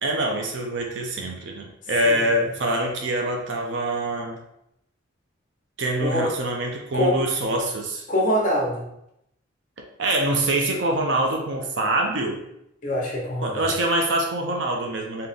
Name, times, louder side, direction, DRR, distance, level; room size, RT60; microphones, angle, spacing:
voice 1, 0.0-4.4 5.8-8.0 10.0-12.4 13.4-15.3, right 1 dB, 70° right, 1 dB, 0.6 m, -25 dB
voice 2, 8.1-8.8 12.8-13.7, equal, 40° left, -2 dB, 0.9 m, -24 dB
3.9 x 2.8 x 3.4 m, 0.79 s
head